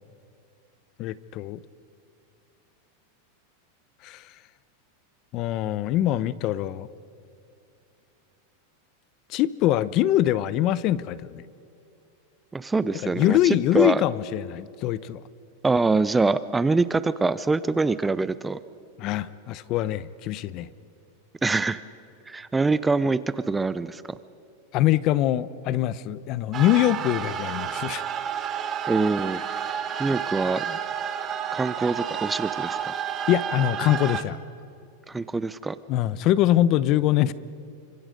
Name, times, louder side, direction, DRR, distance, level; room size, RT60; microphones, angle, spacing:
voice 1, 1.0-1.6 4.0-4.2 5.3-6.9 9.3-11.4 13.0-15.2 19.0-20.7 24.7-28.0 33.3-34.4 35.9-37.3, left 13 dB, 40° left, 18 dB, 0.7 m, -23 dB
voice 2, 12.5-14.0 15.6-18.6 21.4-21.8 22.3-24.2 28.9-29.4 30.0-30.8 31.5-32.9 35.1-35.8, right 3 dB, 10° right, 15 dB, 0.5 m, -24 dB
sound 1, 26.5-34.2, right 8 dB, 25° right, 1.4 m, -30 dB
29.0 x 25.5 x 5.2 m, 2.6 s
supercardioid pair, 150°, 0 cm